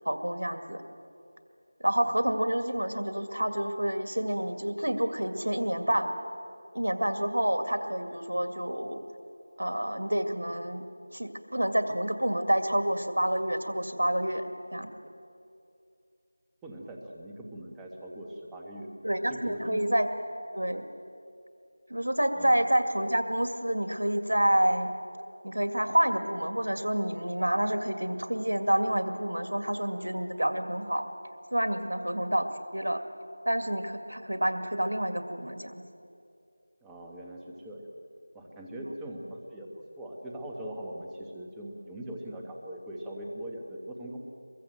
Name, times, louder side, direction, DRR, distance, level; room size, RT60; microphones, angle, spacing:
voice 1, 0.1-0.8 1.8-6.1 6.7-9.0 9.6-10.8 11.1-14.5 14.7-14.9 19.0-20.1 20.5-20.8 21.9-24.9 25.4-31.0 31.5-33.0 33.5-35.8, right 1 dB, 90° right, 7 dB, 2.1 m, -28 dB
voice 2, 16.6-18.9 19.3-19.8 22.3-22.6 36.8-37.9 38.3-44.2, right 1 dB, 5° right, -1 dB, 1.4 m, -41 dB
24.0 x 22.5 x 7.9 m, 2.6 s
figure-of-eight pair, 170°, 0 cm